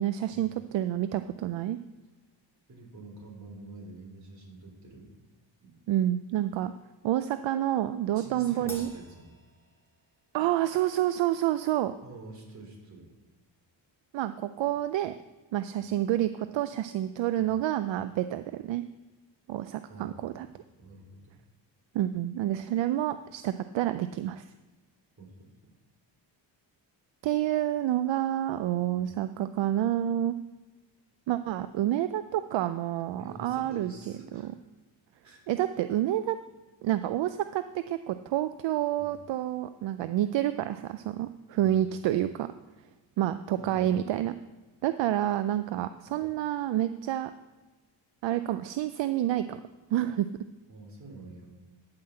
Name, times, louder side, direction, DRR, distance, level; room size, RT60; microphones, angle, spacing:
voice 1, 0.0-1.8 5.9-6.7 7.0-8.9 10.3-12.0 14.1-15.1 15.5-18.8 19.5-20.5 21.9-24.5 27.2-30.4 31.3-33.9 34.3-34.5 35.5-36.4 36.8-42.5 43.2-44.4 44.8-47.3 48.2-49.6 49.9-50.3, right 12 dB, 70° right, 11 dB, 0.5 m, -28 dB
voice 2, 2.7-5.1 5.6-5.8 8.1-9.3 12.0-13.1 17.4-17.6 19.9-20.3 20.8-21.3 25.2-25.7 29.0-29.1 33.2-34.5 35.2-35.4 39.0-39.2 41.6-41.9 43.6-43.9 46.1-46.2 50.7-51.5, right 2 dB, 35° right, -1 dB, 3.5 m, -47 dB
Crash cymbal, 8.7-10.3, equal, 5° left, 2.1 m, -48 dB
9.8 x 5.7 x 7.5 m, 1.2 s
cardioid pair, 110°, 47 cm